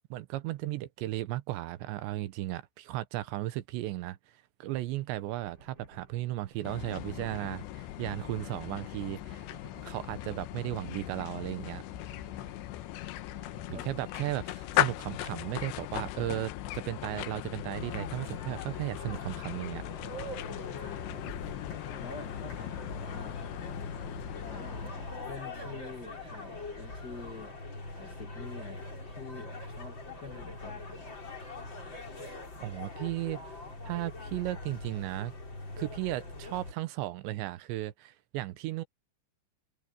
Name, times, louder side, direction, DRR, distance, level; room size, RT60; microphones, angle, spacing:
voice 1, 0.1-4.2 4.6-9.5 9.8-11.8 13.8-19.8 32.6-33.4 33.9-35.3 35.8-38.8, right 16 dB, 80° right, 3.1 m, -35 dB
sound 1, 5.3-16.7, right 2 dB, 25° right, 4.7 m, -56 dB
sound 2, 6.7-25.3, left 15 dB, 80° left, 3.1 m, -38 dB
voice 2, 13.4-14.1 21.2-23.4 24.5-27.6 27.9-31.1, left 4 dB, 40° left, 1.3 m, -47 dB
sound 3, 17.7-36.7, left 2 dB, 25° left, 4.7 m, -42 dB
omnidirectional pair, 5.2 m